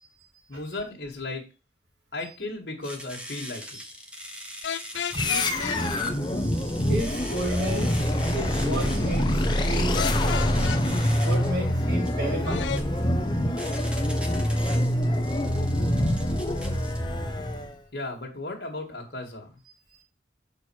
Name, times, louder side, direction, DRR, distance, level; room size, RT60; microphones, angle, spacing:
voice 1, 0.5-1.4 2.1-3.8 17.9-19.6, left 2 dB, 60° left, -1 dB, 1.9 m, -35 dB
sound 1, 2.8-17.0, equal, 5° right, 1.3 m, -41 dB
sound 2, 4.6-5.8 10.0-10.8 12.4-12.8, left 7 dB, 90° left, 0.4 m, -32 dB
sound 3, 5.1-17.8, left 1 dB, 25° left, 0.8 m, -25 dB
voice 2, 6.6-8.0 8.3-10.1 11.2-12.8 15.7-15.9, right 1 dB, 90° right, -2 dB, 3.7 m, -32 dB
6.8 x 4.4 x 6.1 m, 0.30 s
head